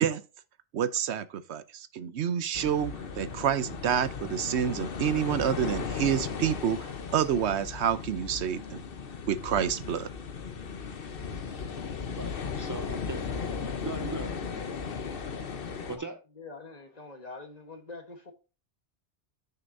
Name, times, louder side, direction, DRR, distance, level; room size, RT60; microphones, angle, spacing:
voice 1, 0.7-8.8 9.3-10.1, right 9 dB, 75° right, 1.0 m, -28 dB
sound 1, 2.5-16.0, left 5 dB, 55° left, 1.1 m, -36 dB
voice 2, 12.2-13.3 13.6-14.6 15.9-16.2, right 3 dB, 35° right, 0.3 m, -39 dB
voice 3, 16.4-18.3, left 3 dB, 35° left, 1.3 m, -45 dB
8.8 x 6.6 x 2.6 m
omnidirectional pair, 1.2 m